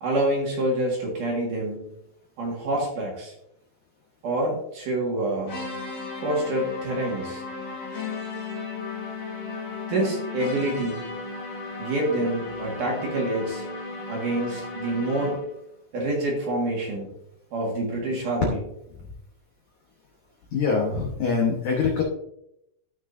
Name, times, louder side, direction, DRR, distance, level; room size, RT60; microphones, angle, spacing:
voice 1, 0.0-1.9 2.4-3.3 4.2-5.6 6.2-7.4 9.9-11.1 11.8-13.6 14.1-15.4 15.9-17.1 17.5-18.6, right 1 dB, 55° right, -2 dB, 2.9 m, -27 dB
sound 1, 5.5-15.6, left 3 dB, 50° left, 2.8 m, -35 dB
voice 2, 20.5-22.0, left 5 dB, 75° left, -1 dB, 1.8 m, -24 dB
14.5 x 6.1 x 2.7 m, 0.80 s
omnidirectional pair, 5.3 m